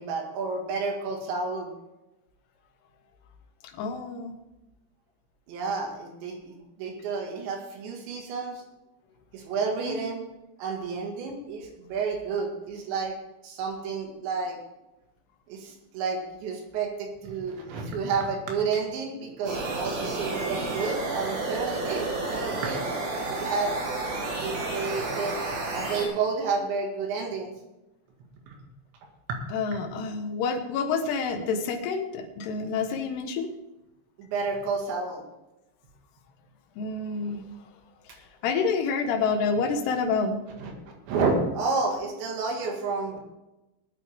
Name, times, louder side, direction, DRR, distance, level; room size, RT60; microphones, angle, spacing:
voice 1, 0.0-1.7 5.5-8.6 9.3-10.2 10.6-13.1 13.4-14.6 15.5-22.8 23.4-23.7 24.4-27.5 28.5-28.6 29.3-29.4 29.7-29.8 34.2-35.3 40.6-40.7 41.1-43.2, right 4 dB, 75° right, 1 dB, 4.3 m, -30 dB
voice 2, 3.7-4.3 9.8-10.1 29.5-33.5 36.8-37.4 38.4-40.4, left 5 dB, 70° left, 4 dB, 3.2 m, -28 dB
sound 1, 19.5-26.1, right 2 dB, 90° right, 4.9 m, -31 dB
20.5 x 9.3 x 3.7 m, 0.98 s
omnidirectional pair, 5.4 m